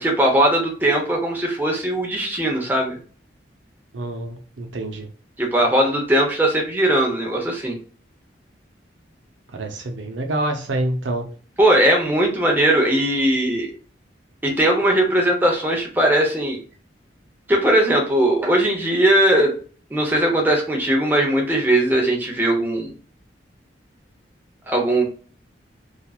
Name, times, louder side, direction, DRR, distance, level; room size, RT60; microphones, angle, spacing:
voice 1, 0.0-3.0 5.4-7.8 11.6-13.7 14.4-16.6 17.5-19.5 19.9-22.9 24.7-25.1, right 1 dB, 10° right, 0 dB, 0.6 m, -19 dB
voice 2, 3.9-5.1 9.5-11.3, right 1 dB, 90° right, 4 dB, 0.6 m, -27 dB
2.9 x 2.4 x 2.3 m, 0.41 s
head